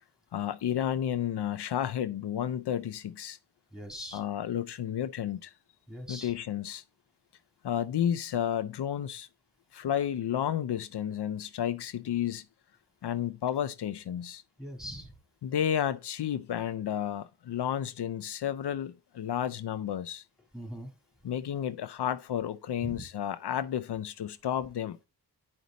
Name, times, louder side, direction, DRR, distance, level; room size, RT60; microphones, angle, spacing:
voice 1, 0.3-3.4 4.1-5.5 6.1-6.8 7.6-9.3 9.7-12.4 13.0-14.4 15.4-20.2 21.2-25.0, left 10 dB, 80° left, 0.6 m, -32 dB
voice 2, 3.7-4.2 5.9-6.3 14.6-15.1 20.5-20.9 22.8-23.0, equal, ahead, 3.0 m, -41 dB
9.7 x 5.2 x 4.0 m
wide cardioid pair, 85°, 39 cm